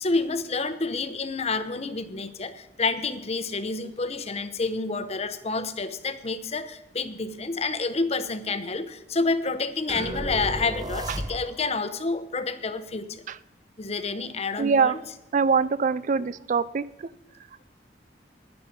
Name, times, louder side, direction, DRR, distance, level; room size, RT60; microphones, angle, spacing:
voice 1, 0.0-13.2 13.8-15.0, left 3 dB, 35° left, 11 dB, 0.9 m, -29 dB
sound 1, 9.9-11.8, right 1 dB, 20° right, 1.1 m, -33 dB
voice 2, 14.6-14.9 15.3-16.9, right 5 dB, 45° right, 18 dB, 0.4 m, -23 dB
11.0 x 10.5 x 5.3 m, 0.90 s
head